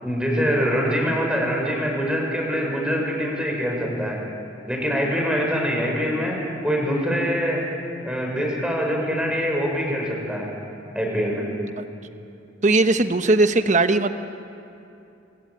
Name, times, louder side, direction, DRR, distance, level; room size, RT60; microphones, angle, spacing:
voice 1, 0.0-4.2 4.7-7.6 8.0-10.5 10.9-11.5, equal, 5° right, -1 dB, 6.2 m, -24 dB
voice 2, 12.6-14.1, right 2 dB, 40° right, 9 dB, 1.2 m, -18 dB
26.0 x 23.5 x 9.7 m, 2.7 s
head